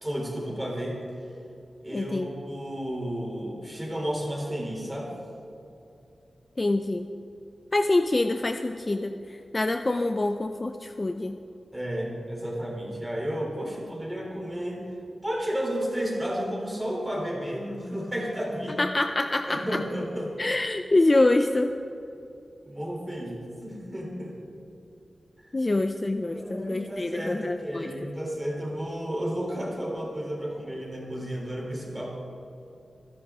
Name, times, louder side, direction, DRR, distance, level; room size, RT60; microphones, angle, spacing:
voice 1, 0.0-1.0 1.8-5.1 11.7-14.9 15.2-18.8 19.4-20.3 22.7-24.3 26.3-32.2, equal, 10° right, -2 dB, 3.3 m, -32 dB
voice 2, 1.9-2.3 6.6-7.1 7.7-11.4 18.8-19.8 20.4-21.7 25.5-27.9, left 2 dB, 25° left, 7 dB, 0.4 m, -25 dB
26.5 x 11.0 x 3.6 m, 2.7 s
wide cardioid pair, 140°, 0 cm